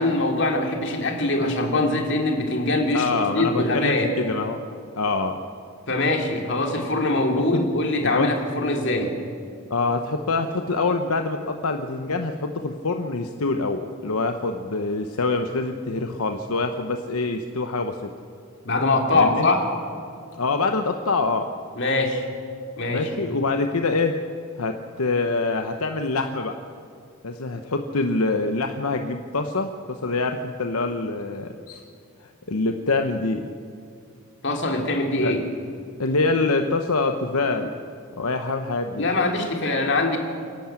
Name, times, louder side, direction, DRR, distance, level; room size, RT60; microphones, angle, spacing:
voice 1, 0.0-4.1 5.9-9.1 18.6-19.7 21.8-22.2 22.8-23.1 34.4-35.4 39.0-40.2, left 2 dB, 55° left, 3 dB, 2.7 m, -23 dB
voice 2, 2.9-4.6 5.0-5.4 7.3-7.6 8.0-8.3 9.7-18.1 19.1-19.5 20.4-21.5 22.9-24.2 24.6-26.5 27.2-31.8 32.2-33.5 35.2-35.3 36.0-37.7 38.2-39.1, left 3 dB, 80° left, 5 dB, 1.0 m, -25 dB
27.5 x 11.5 x 8.9 m, 2.3 s
head